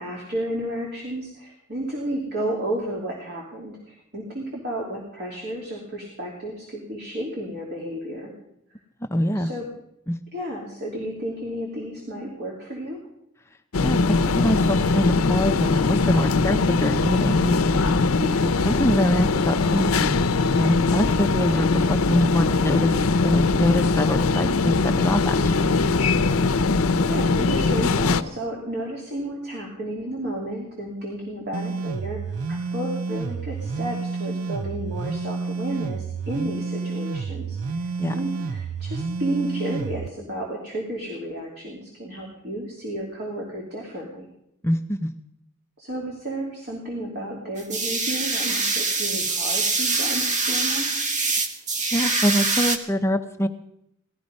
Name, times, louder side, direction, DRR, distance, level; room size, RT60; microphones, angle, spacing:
voice 1, 0.0-8.3 9.3-9.7 10.3-13.0 18.2-18.7 27.1-32.2 32.5-37.9 38.1-44.3 45.8-50.9, right 1 dB, 50° right, -2 dB, 2.9 m, -32 dB
voice 2, 9.1-9.5 10.1-10.2 13.8-18.0 18.7-20.2 20.6-22.9 23.2-25.7 38.0-38.2 44.6-45.1 51.9-53.5, equal, 15° left, 7 dB, 0.6 m, -24 dB
sound 1, 13.7-28.2, left 3 dB, 75° left, 0.7 m, -21 dB
sound 2, 31.5-40.1, right 4 dB, 85° right, 0.5 m, -30 dB
sound 3, 47.6-52.8, right 3 dB, 35° right, 1.3 m, -24 dB
17.5 x 14.0 x 5.3 m, 0.79 s
head